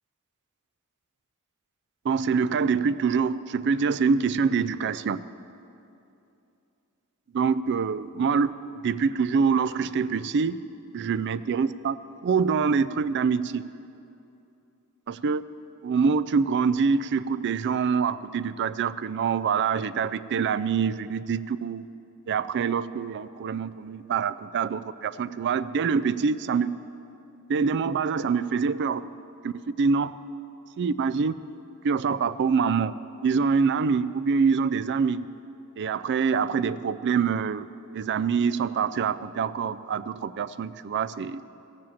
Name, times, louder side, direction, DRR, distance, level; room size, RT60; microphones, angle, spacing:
voice 1, 2.0-5.3 7.3-8.5 8.8-10.6 10.9-12.0 12.2-13.6 15.1-15.4 15.8-21.8 22.3-26.7 27.5-29.0 29.4-30.1 30.8-31.3 31.8-32.9 33.2-35.2 35.8-37.7 37.9-41.4, right 5 dB, 55° right, 15 dB, 0.4 m, -25 dB
15.0 x 7.6 x 7.2 m, 2.7 s
head